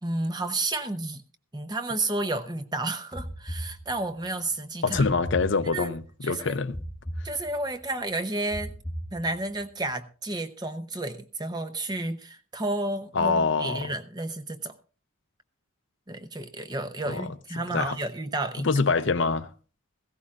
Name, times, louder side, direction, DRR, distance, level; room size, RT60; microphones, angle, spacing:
voice 1, 0.0-1.2 1.5-5.2 5.7-5.9 6.2-6.6 7.2-8.7 9.1-14.7 16.1-18.7, right 2 dB, 20° right, 0.7 m, -31 dB
sound 1, 3.1-4.3 4.9-6.1 6.7-7.9 8.5-9.7, equal, 5° left, 1.0 m, -38 dB
voice 2, 4.8-6.8 13.1-13.9 17.1-17.3 17.7-18.0 18.6-19.5, left 4 dB, 55° left, 0.6 m, -25 dB
17.0 x 15.5 x 2.5 m
head